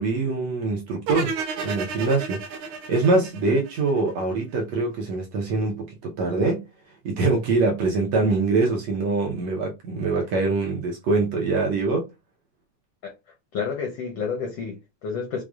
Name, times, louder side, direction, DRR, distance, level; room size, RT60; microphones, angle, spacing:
voice 1, 0.0-1.4 1.6-6.7 7.1-12.1, right 3 dB, 70° right, 1.7 m, -24 dB
sound 1, 1.1-4.2, right 5 dB, 85° right, 2.5 m, -32 dB
voice 2, 13.5-15.4, left 5 dB, 75° left, 1.4 m, -30 dB
6.3 x 2.2 x 2.4 m
omnidirectional pair, 3.7 m